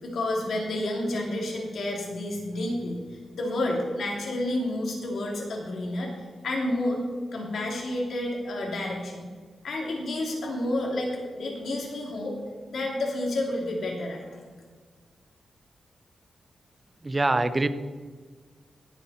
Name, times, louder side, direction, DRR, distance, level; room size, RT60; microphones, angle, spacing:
voice 1, 0.0-3.0 3.3-7.0 7.3-9.3 9.6-12.4 12.7-14.4, left 1 dB, 70° left, -1 dB, 3.1 m, -30 dB
voice 2, 17.0-17.7, right 2 dB, 25° right, 11 dB, 0.7 m, -23 dB
18.0 x 8.2 x 4.4 m, 1.5 s
wide cardioid pair, 105°, 0 cm